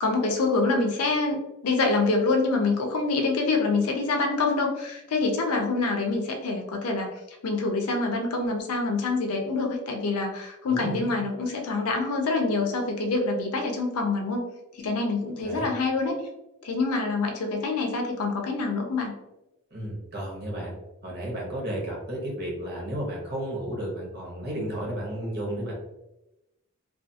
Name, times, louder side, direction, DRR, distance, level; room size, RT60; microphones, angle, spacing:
voice 1, 0.0-7.1 7.4-14.4 14.7-16.1 16.6-19.1, left 3 dB, 85° left, 2 dB, 0.5 m, -26 dB
voice 2, 10.7-11.1 15.4-15.7 19.7-20.7 21.0-25.7, right 1 dB, 45° right, -3 dB, 0.8 m, -33 dB
2.4 x 2.4 x 2.7 m, 0.94 s
head